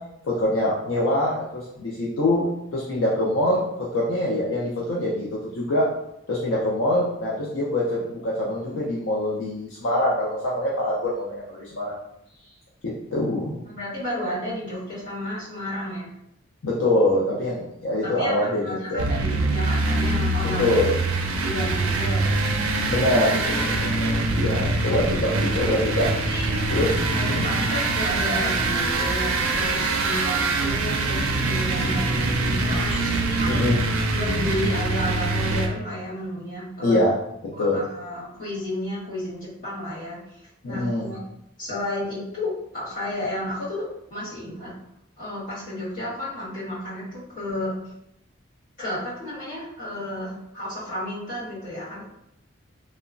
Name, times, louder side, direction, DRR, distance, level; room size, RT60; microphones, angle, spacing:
voice 1, 0.2-3.6 3.9-5.9 6.3-11.9 12.8-13.6 16.6-19.1 20.6-20.9 22.9-26.1 26.7-27.4 33.5-33.8 36.8-37.1 37.6-37.8 40.6-41.1, left 1 dB, 65° left, -5 dB, 0.4 m, -24 dB
voice 2, 13.7-16.1 18.0-20.8 21.4-22.4 26.2-33.6 34.1-37.0 37.5-41.2 41.6-43.8 44.1-44.7 45.2-47.8 48.8-52.0, left 1 dB, 40° left, -10 dB, 1.5 m, -32 dB
sound 1, 19.0-35.7, right 2 dB, 85° right, 0.4 m, -24 dB
2.9 x 2.1 x 2.4 m, 0.81 s
head